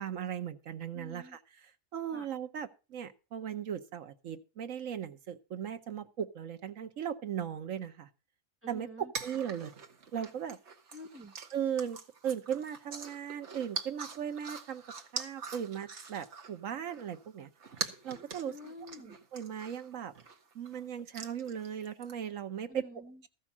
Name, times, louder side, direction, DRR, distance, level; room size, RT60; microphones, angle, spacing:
voice 1, 0.0-1.4 1.9-8.1 8.7-9.7 10.1-10.6 11.5-14.8 15.1-17.5 18.0-18.5 19.3-20.1 20.5-22.8, right 8 dB, 75° right, 1.3 m, -37 dB
voice 2, 0.9-1.4 2.1-2.3 8.6-9.1 10.9-11.3 18.4-19.2 22.7-23.2, left 1 dB, 10° right, 0.9 m, -48 dB
sound 1, 9.1-16.6 16.9-20.8 21.1-22.1, right 5 dB, 60° right, 1.5 m, -44 dB
14.0 x 5.4 x 7.2 m
omnidirectional pair, 1.4 m